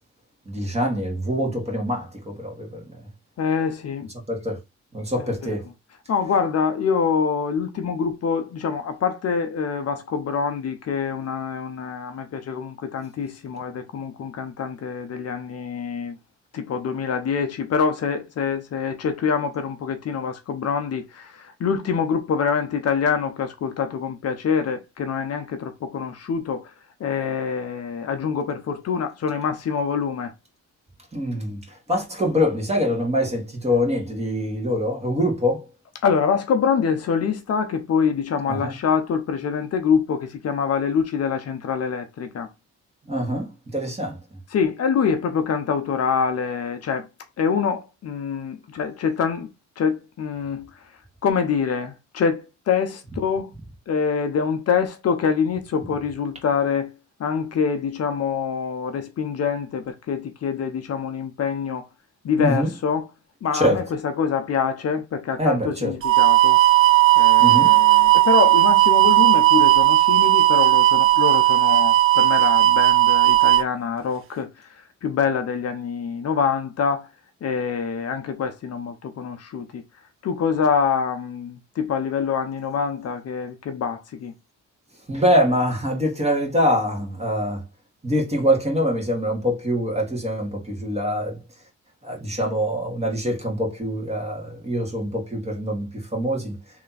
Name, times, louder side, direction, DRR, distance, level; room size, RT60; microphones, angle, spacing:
voice 1, 0.5-3.0 4.3-4.6 4.9-5.7 31.1-31.6 31.9-35.6 38.5-38.7 43.1-44.2 62.4-62.7 63.5-63.8 65.4-65.9 67.4-67.8 85.1-87.6 88.0-91.4 92.0-96.6, equal, 20° right, 1.9 m, -24 dB
voice 2, 3.4-4.1 5.2-5.3 6.1-16.2 16.5-26.7 27.0-30.3 36.0-42.5 44.5-47.1 47.4-49.5 49.8-50.7 51.2-53.5 53.9-56.9 57.2-61.9 62.2-63.1 63.4-66.6 67.2-77.1 77.4-79.8 80.2-84.3, left 6 dB, 55° left, 0.8 m, -25 dB
sound 1, 66.0-73.6, right 16 dB, 50° right, 0.4 m, -15 dB
3.3 x 3.0 x 4.0 m
cardioid pair, 90°, 30 cm